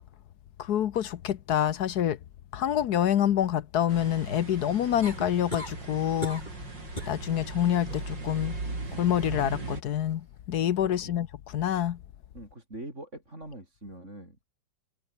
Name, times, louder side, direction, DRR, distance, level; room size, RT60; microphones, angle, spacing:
voice 1, 0.6-2.2 2.5-6.5 7.1-8.6 9.0-12.0, left 10 dB, 65° left, 1.2 m, -27 dB
sound 1, 3.9-9.8, right 3 dB, 70° right, 6.0 m, -38 dB
sound 2, 5.0-5.8 6.2-6.6 7.0-7.2 7.7-8.1 9.9-10.0, left 1 dB, 20° left, 7.6 m, -37 dB
voice 2, 10.8-11.1 12.3-14.5, right 1 dB, 35° right, 7.8 m, -43 dB
omnidirectional pair, 2.1 m